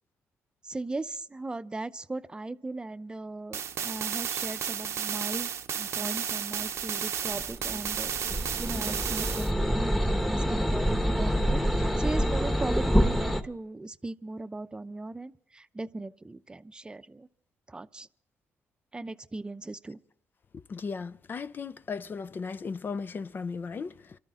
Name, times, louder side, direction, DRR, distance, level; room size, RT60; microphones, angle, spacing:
voice 1, 0.6-8.1 8.6-17.3 17.7-18.1 18.9-20.0, right 2 dB, 15° right, 0.7 m, -38 dB
sound 1, 3.5-9.5, right 8 dB, 65° right, 0.8 m, -33 dB
sound 2, 7.3-13.4, equal, 5° left, 1.2 m, -27 dB
voice 2, 20.5-24.2, left 5 dB, 40° left, 0.6 m, -36 dB
27.0 x 13.0 x 3.8 m
cardioid pair, 90°, 5 cm